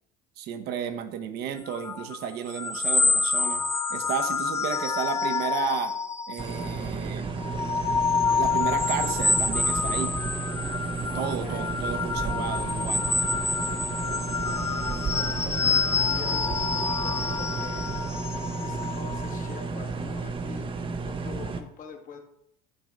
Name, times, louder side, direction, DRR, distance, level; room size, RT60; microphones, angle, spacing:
voice 1, 0.4-3.6 3.9-5.9 6.3-7.3 8.4-10.1 11.1-13.1, right 8 dB, 65° right, 7 dB, 1.0 m, -33 dB
sound 1, 1.7-6.9 7.3-19.6, left 4 dB, 15° left, 0.6 m, -28 dB
sound 2, 6.4-21.6, right 4 dB, 30° right, 0.8 m, -32 dB
voice 2, 11.1-11.7 14.7-15.8 16.0-17.9 18.6-22.2, left 5 dB, 45° left, 4 dB, 1.5 m, -44 dB
9.1 x 3.6 x 5.2 m, 0.75 s
supercardioid pair, 100°, 18 cm